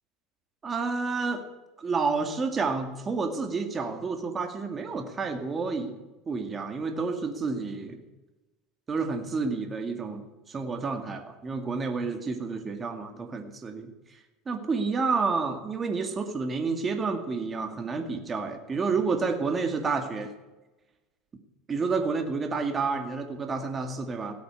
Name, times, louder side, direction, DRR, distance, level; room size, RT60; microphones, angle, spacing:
voice 1, 0.6-1.4 1.8-6.0 6.3-8.0 8.9-13.9 14.5-20.3 21.7-24.3, right 4 dB, 25° right, 6 dB, 2.1 m, -30 dB
16.5 x 8.6 x 8.8 m, 1.1 s
supercardioid pair, 125°, 0 cm